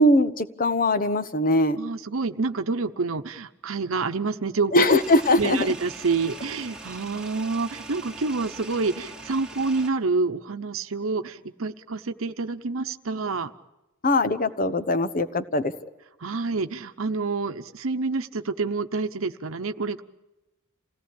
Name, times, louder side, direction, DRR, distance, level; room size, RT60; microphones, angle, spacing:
voice 1, 0.0-1.8 4.7-5.7 14.0-15.7, left 1 dB, 45° left, 13 dB, 1.1 m, -21 dB
voice 2, 1.8-4.7 5.4-13.5 16.2-20.0, right 4 dB, 80° right, 9 dB, 0.9 m, -28 dB
sound 1, 4.9-9.9, right 3 dB, 5° right, 2.4 m, -41 dB
27.5 x 17.5 x 8.6 m, 1.0 s
head